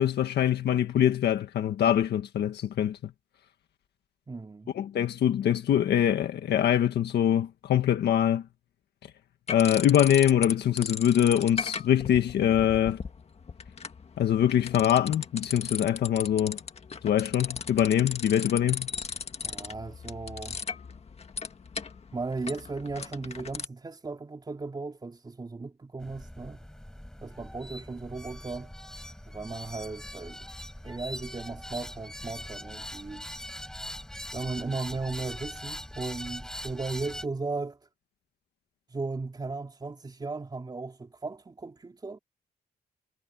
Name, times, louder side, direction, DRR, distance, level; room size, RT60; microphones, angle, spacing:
voice 1, 0.0-3.0 4.7-8.4 9.5-13.0 14.2-16.6 17.0-18.9, left 10 dB, 85° left, 1.6 m, -24 dB
voice 2, 4.3-4.7 19.4-20.6 22.1-26.6 27.2-28.7 29.3-30.4 30.8-33.2 34.3-37.8 38.9-42.2, right 3 dB, 25° right, 4.2 m, -36 dB
sound 1, 9.5-10.5 10.8-23.7, left 5 dB, 40° left, 1.8 m, -37 dB
sound 2, 26.0-37.3, equal, 5° left, 5.9 m, -42 dB
cardioid pair, 125°, 17 cm